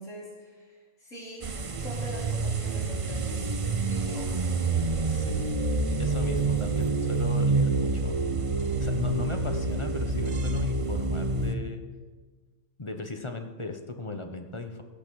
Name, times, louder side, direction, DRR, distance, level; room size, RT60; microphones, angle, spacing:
voice 1, 0.0-3.5 3.8-4.3, equal, 70° left, -5 dB, 4.8 m, -42 dB
sound 1, 1.4-11.6, right 3 dB, 35° right, 0.6 m, -27 dB
voice 2, 5.1-5.4 6.0-8.2 8.8-11.8 12.8-14.8, left 2 dB, 25° left, 5 dB, 1.0 m, -37 dB
16.5 x 8.7 x 6.4 m, 1.4 s
omnidirectional pair, 1.4 m